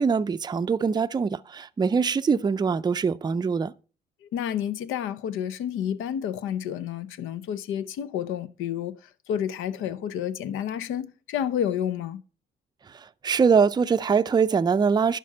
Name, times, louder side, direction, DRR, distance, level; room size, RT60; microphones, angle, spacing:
voice 1, 0.0-3.7 12.9-15.2, right 5 dB, 20° right, 0.4 m, -23 dB
voice 2, 4.2-9.0 9.3-12.2, left 9 dB, 90° left, 0.7 m, -30 dB
11.0 x 5.1 x 5.4 m
cardioid pair, 90°, 20 cm